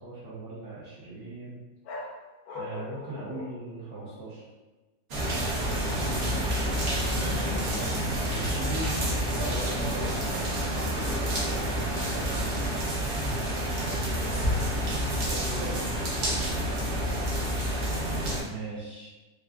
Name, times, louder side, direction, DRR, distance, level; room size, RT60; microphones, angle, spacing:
voice 1, 0.0-1.6 2.0-2.1 2.5-4.4 6.3-6.4 8.2-9.0 9.7-10.5 10.9-12.4 15.6-15.8 18.4-19.1, right 3 dB, 65° right, -8 dB, 1.3 m, -40 dB
sound 1, 1.8-4.4 5.5-6.2 6.5-7.0 10.0-10.6 14.2-14.9, left 3 dB, 70° left, 0.9 m, -43 dB
sound 2, 5.1-18.4, equal, 50° right, 0.9 m, -28 dB
voice 2, 5.7-8.1 9.3-10.2 12.7-12.9 15.2-16.1, equal, 35° right, -8 dB, 1.3 m, -41 dB
5.0 x 2.2 x 2.3 m, 1.1 s
omnidirectional pair, 1.9 m